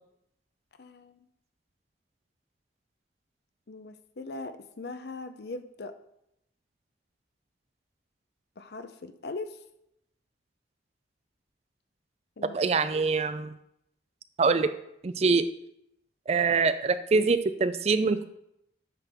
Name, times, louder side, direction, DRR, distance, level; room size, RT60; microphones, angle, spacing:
voice 1, 0.8-1.3 3.7-5.9 8.6-9.6 12.4-12.7, left 3 dB, 60° left, 9 dB, 0.6 m, -40 dB
voice 2, 12.5-13.6 14.4-14.7 15.0-15.5 16.3-18.3, right 4 dB, 35° right, 12 dB, 0.4 m, -24 dB
9.2 x 5.9 x 3.5 m, 0.78 s
head